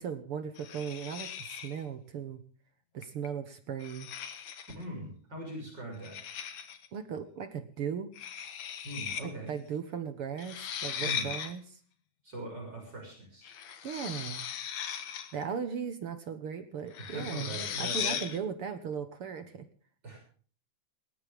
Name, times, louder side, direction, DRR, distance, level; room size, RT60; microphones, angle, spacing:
voice 1, 0.0-2.4 2.9-4.1 6.9-8.1 9.2-11.8 13.8-14.5 15.3-19.7, right 7 dB, 55° right, 10 dB, 1.6 m, -37 dB
sound 1, 0.6-1.8 3.0-3.3 3.8-4.8 6.0-6.9 8.2-9.2 9.5-9.6 10.4-11.5 13.4-15.4 16.9-18.4, left 8 dB, 60° left, 2.5 m, -38 dB
voice 2, 4.8-6.2 8.8-9.5 11.0-11.3 12.2-13.5 17.1-18.3 20.0-20.2, right 1 dB, 30° right, 1 dB, 7.1 m, -41 dB
19.5 x 18.0 x 3.5 m, 0.43 s
omnidirectional pair, 3.7 m